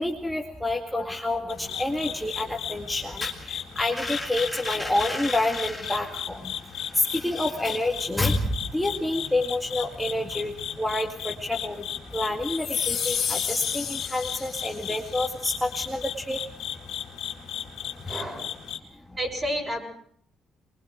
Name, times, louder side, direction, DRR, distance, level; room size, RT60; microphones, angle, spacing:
voice 1, 0.0-6.4 7.2-10.5 10.8-11.7 12.1-16.0 16.3-16.4, left 1 dB, 5° left, 0 dB, 2.1 m, -28 dB
sound 1, 1.5-18.8, left 9 dB, 80° left, 2.2 m, -36 dB
sound 2, 12.5-15.1, left 7 dB, 55° left, 2.3 m, -30 dB
voice 2, 18.1-18.6 19.2-19.8, equal, 30° right, 2 dB, 6.9 m, -31 dB
24.0 x 22.5 x 4.9 m, 0.62 s
cardioid pair, 90°, 0 cm